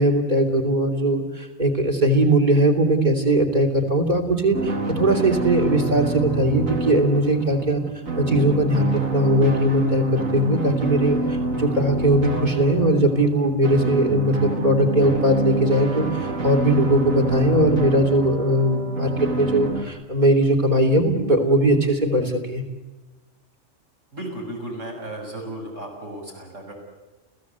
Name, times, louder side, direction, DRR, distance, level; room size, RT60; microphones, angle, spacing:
voice 1, 0.0-7.8 8.2-16.1 16.4-22.6, right 1 dB, 35° right, 5 dB, 3.5 m, -20 dB
sound 1, 4.5-19.8, right 3 dB, 90° right, 2.7 m, -27 dB
voice 2, 24.1-26.7, right 1 dB, 75° right, 0 dB, 7.2 m, -34 dB
29.5 x 16.5 x 8.3 m, 1.1 s
omnidirectional pair, 1.3 m